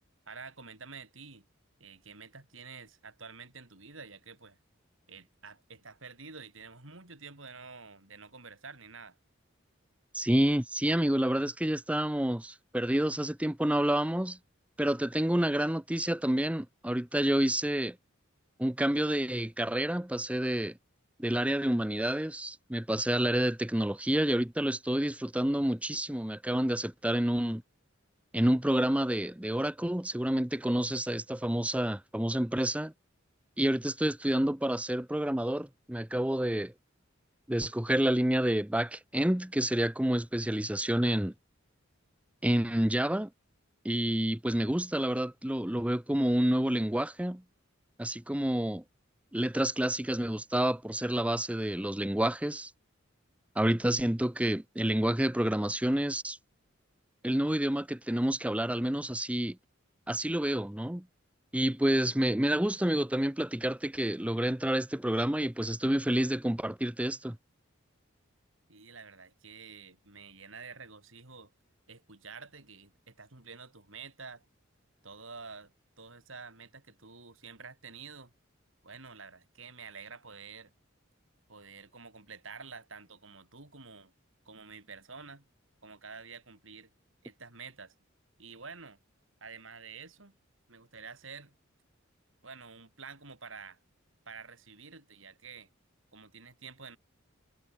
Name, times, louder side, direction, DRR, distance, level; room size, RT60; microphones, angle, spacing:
voice 1, 0.3-1.5 1.8-4.6 5.1-9.2 68.7-71.5 71.9-74.4 75.0-78.3 78.8-80.7 81.5-84.1 84.4-85.5 85.8-86.9 87.2-87.9 88.4-89.0 89.4-90.4 90.7-91.5 92.4-93.8 94.2-95.7 96.1-97.0, right 5 dB, 70° right, 5.0 m, -48 dB
voice 2, 10.1-14.4 14.8-18.0 18.6-20.7 21.2-27.6 28.3-32.9 33.6-36.7 37.5-41.3 42.4-43.3 43.8-47.4 48.0-48.8 49.3-52.7 53.6-56.4 57.2-59.6 60.1-61.0 61.5-67.4, right 1 dB, 5° right, 0.7 m, -29 dB
head